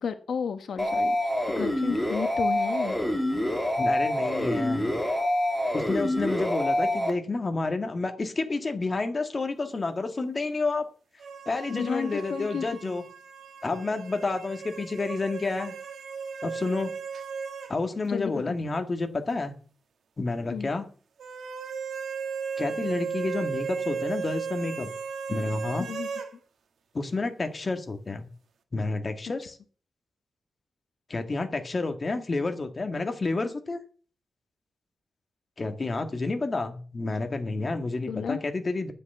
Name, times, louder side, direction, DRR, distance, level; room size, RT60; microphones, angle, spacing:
voice 1, 0.0-3.0 11.7-12.9 18.0-18.6 20.5-20.7 25.8-26.1 38.1-38.4, left 6 dB, 80° left, 9 dB, 1.1 m, -32 dB
sound 1, 0.8-7.1, left 1 dB, 5° left, 2.7 m, -26 dB
voice 2, 3.8-4.9 5.7-10.9 11.5-13.0 13.6-15.7 16.4-16.9 17.7-19.5 20.2-20.9 22.6-24.9 25.3-25.9 26.9-28.3 28.7-29.6 31.1-33.8 35.6-38.9, left 3 dB, 30° left, 6 dB, 1.8 m, -30 dB
sound 2, 11.2-17.8 18.0-18.1 21.2-26.3, right 6 dB, 85° right, 1.7 m, -36 dB
9.7 x 8.1 x 8.0 m, 0.40 s
wide cardioid pair, 135°, 0 cm